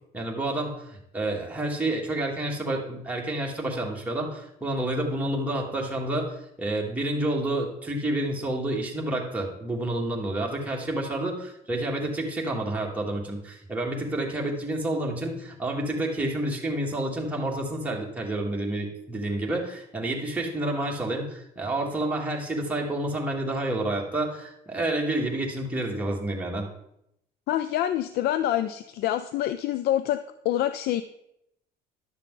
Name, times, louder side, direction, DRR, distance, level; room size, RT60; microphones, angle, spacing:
voice 1, 0.1-26.7, right 1 dB, 10° right, -2 dB, 1.9 m, -29 dB
voice 2, 27.5-31.0, left 12 dB, 70° left, 12 dB, 0.4 m, -26 dB
11.0 x 6.5 x 3.8 m, 0.79 s
cardioid pair, 110°, 17 cm